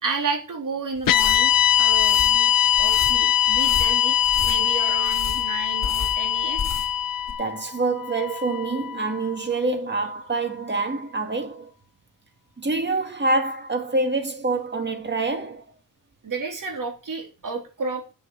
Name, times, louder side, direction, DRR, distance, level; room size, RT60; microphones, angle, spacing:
voice 1, 0.0-1.5 1.8-4.1 4.4-6.6 16.2-18.1, right 4 dB, 65° right, 3.4 m, -31 dB
sound 1, 0.9-7.0 7.3-7.4, left 5 dB, 50° left, 2.9 m, -34 dB
sound 2, 1.1-9.4, left 11 dB, 75° left, 0.5 m, -22 dB
voice 2, 7.4-11.7 12.6-15.6, right 3 dB, 30° right, 2.0 m, -26 dB
7.8 x 7.1 x 8.3 m
wide cardioid pair, 120°, 34 cm